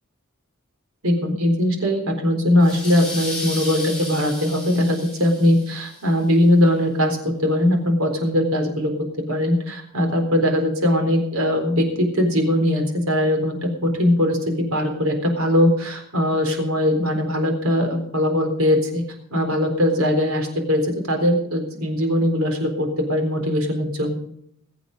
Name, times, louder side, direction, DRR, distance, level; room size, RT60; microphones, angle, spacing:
voice 1, 1.0-8.9 9.3-19.0 19.3-24.1, left 1 dB, 70° right, 4 dB, 4.0 m, -20 dB
sound 1, 2.6-6.0, left 1 dB, 5° left, 7.2 m, -34 dB
21.5 x 8.1 x 5.2 m, 0.73 s
head